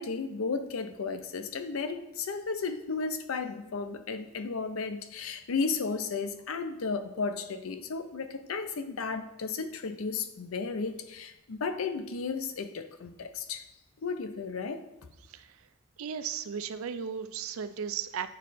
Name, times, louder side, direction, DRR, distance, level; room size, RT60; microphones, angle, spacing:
voice 1, 0.0-13.6 14.0-14.8, left 4 dB, 90° left, 10 dB, 0.6 m, -34 dB
voice 2, 16.0-18.3, right 7 dB, 90° right, 12 dB, 0.4 m, -35 dB
9.1 x 3.1 x 4.2 m, 0.90 s
head